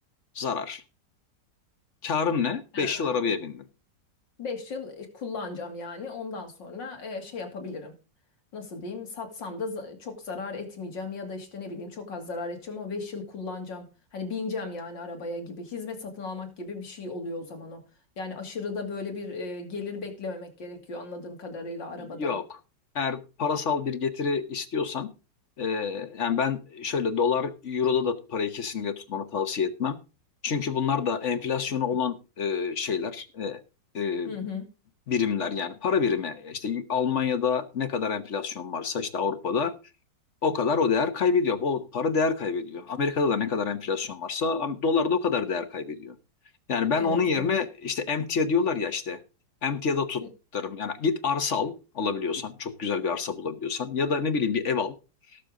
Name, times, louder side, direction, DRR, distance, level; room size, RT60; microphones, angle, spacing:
voice 1, 0.3-0.8 2.0-3.6 22.0-22.4 22.9-25.1 25.6-30.0 30.4-33.6 33.9-34.3 35.1-39.7 40.4-46.1 46.7-49.2 49.6-50.2 50.5-54.9, left 5 dB, 45° left, 1.2 m, -27 dB
voice 2, 2.7-3.2 4.4-7.9 8.5-17.8 18.2-22.4 34.3-34.7 46.9-47.5 50.2-50.3, left 3 dB, 90° left, 3.2 m, -36 dB
18.0 x 6.8 x 3.7 m
omnidirectional pair, 1.9 m